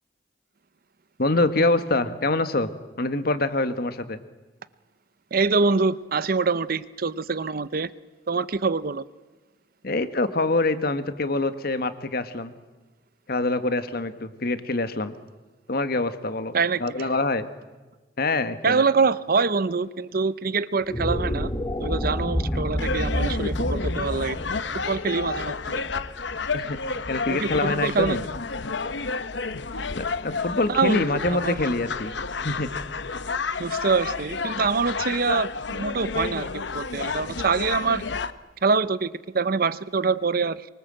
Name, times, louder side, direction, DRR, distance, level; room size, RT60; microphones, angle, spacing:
voice 1, 1.2-2.7 3.0-4.2 9.8-12.5 13.3-15.1 15.7-16.5 16.8-17.5 18.2-18.8 22.5-22.7 26.5-28.2 29.9-32.7, left 2 dB, 55° left, 1.5 m, -25 dB
voice 2, 5.3-7.9 8.3-9.1 16.5-17.1 18.6-21.5 21.8-24.4 24.7-25.8 27.3-28.2 30.7-31.6 33.6-38.0 38.6-40.7, right 4 dB, 50° right, 0.7 m, -25 dB
sound 1, 20.8-27.2, equal, 20° left, 1.7 m, -29 dB
sound 2, 22.8-38.3, left 4 dB, 70° left, 1.0 m, -31 dB
24.5 x 24.0 x 7.7 m
head